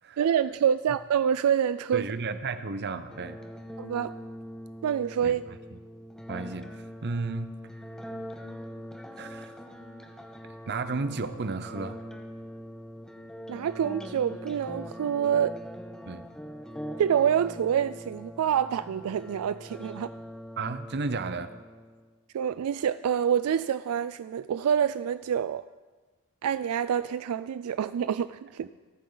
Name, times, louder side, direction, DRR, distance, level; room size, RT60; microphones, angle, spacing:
voice 1, 0.2-2.0 3.8-4.1 4.8-5.4 13.5-15.5 17.0-20.1 22.3-25.6 26.4-28.7, right 8 dB, 75° right, 14 dB, 0.3 m, -27 dB
voice 2, 1.9-3.4 5.2-5.8 6.3-6.8 7.0-7.5 9.2-9.5 10.7-12.0 16.1-16.3 20.6-21.6 28.6-28.7, right 3 dB, 50° right, 11 dB, 0.8 m, -33 dB
sound 1, 3.1-22.1, equal, 5° left, 1.0 m, -42 dB
26.5 x 9.2 x 3.9 m, 1.4 s
head